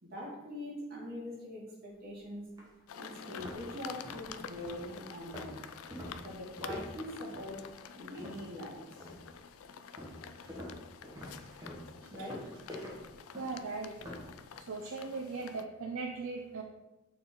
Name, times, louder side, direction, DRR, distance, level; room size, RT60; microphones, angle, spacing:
voice 1, 0.0-2.5 3.0-5.6 6.1-9.1 12.1-12.6, left 1 dB, 45° right, -5 dB, 2.1 m, -43 dB
sound 1, 2.0-2.1 2.6-2.7 3.1-8.6 9.0-9.4 10.0-14.3, left 1 dB, 20° right, 1.2 m, -46 dB
sound 2, 2.9-15.6, left 7 dB, 80° left, 0.4 m, -49 dB
voice 2, 13.3-13.9 14.7-16.6, right 4 dB, 65° right, 3 dB, 0.5 m, -38 dB
6.7 x 4.2 x 3.8 m, 1.0 s
head